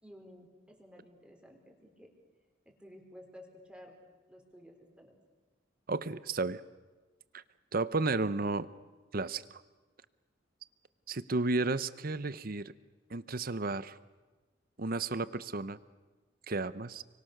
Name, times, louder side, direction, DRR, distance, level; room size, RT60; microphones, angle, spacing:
voice 1, 0.0-2.1 2.7-4.0 4.3-5.2, equal, 5° right, 2 dB, 4.3 m, -54 dB
voice 2, 5.9-6.6 7.3-7.4 7.7-8.7 9.1-9.6 11.1-12.7 13.1-14.0 14.8-15.8 16.5-17.0, right 3 dB, 50° right, 15 dB, 0.9 m, -33 dB
30.0 x 24.0 x 6.7 m, 1.2 s
head